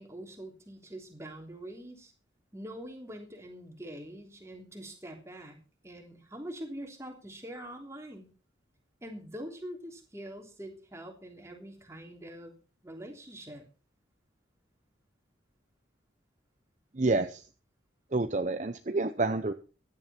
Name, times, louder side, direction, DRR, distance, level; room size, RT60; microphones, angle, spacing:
voice 1, 0.0-2.1 2.5-5.6 5.8-8.3 9.0-12.5 12.8-13.6, right 1 dB, 15° right, 2 dB, 3.2 m, -44 dB
voice 2, 16.9-17.5 18.1-19.5, right 3 dB, 40° right, 9 dB, 0.7 m, -28 dB
16.0 x 11.0 x 4.3 m, 0.35 s
head